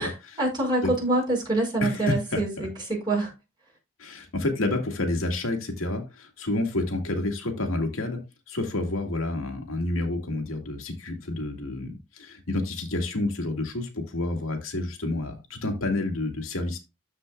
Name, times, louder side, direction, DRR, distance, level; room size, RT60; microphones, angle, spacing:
voice 1, 0.0-3.3, right 2 dB, 20° right, 5.6 m, -26 dB
voice 2, 1.8-2.4 4.0-8.2 8.5-16.8, left 2 dB, 70° left, 2.2 m, -29 dB
14.0 x 5.0 x 2.3 m
head